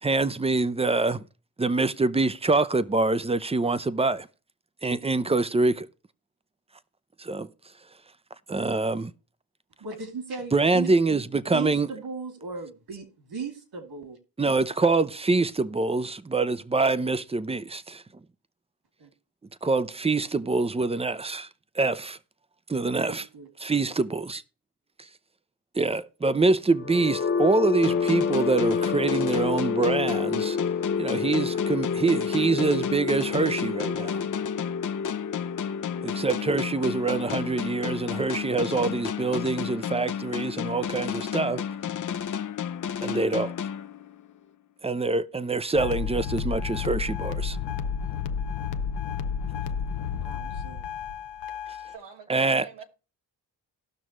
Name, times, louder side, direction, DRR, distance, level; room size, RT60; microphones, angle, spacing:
voice 1, 0.0-1.3 1.6-4.3 4.8-5.9 7.2-7.5 8.5-9.1 10.5-11.9 14.4-18.0 19.6-21.5 21.7-22.2 22.7-23.3 23.6-24.4 25.0-25.1 25.7-30.6 31.0-34.2 36.0-41.6 43.0-43.5 44.8-47.6 52.3-52.7, right 3 dB, 15° right, 0.5 m, -25 dB
voice 2, 9.8-10.9 11.5-14.2 19.0-19.1 23.0-23.5 50.1-50.8, right 4 dB, 65° right, 2.8 m, -37 dB
sound 1, 26.7-40.6, left 5 dB, 30° left, 0.9 m, -30 dB
sound 2, 27.8-44.4, left 8 dB, 45° left, 0.7 m, -32 dB
sound 3, 45.8-52.0, left 7 dB, 85° left, 0.7 m, -31 dB
voice 3, 51.9-52.9, right 5 dB, 85° right, 2.2 m, -45 dB
17.5 x 6.2 x 3.1 m
cardioid pair, 90°, 41 cm